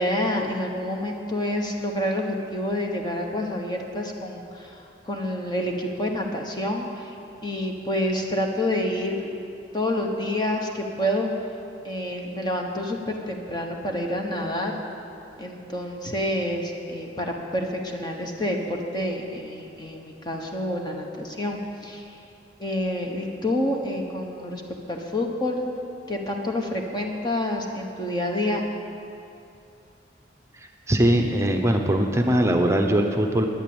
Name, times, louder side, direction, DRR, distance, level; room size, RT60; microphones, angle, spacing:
voice 1, 0.0-7.2 7.4-9.4 9.7-11.3 11.8-14.8 15.4-22.2 22.6-24.6 24.9-25.7 26.1-28.6, left 1 dB, 20° left, 1 dB, 1.2 m, -28 dB
voice 2, 30.9-33.5, right 1 dB, 15° right, 3 dB, 0.9 m, -21 dB
11.5 x 10.0 x 8.9 m, 2.7 s
head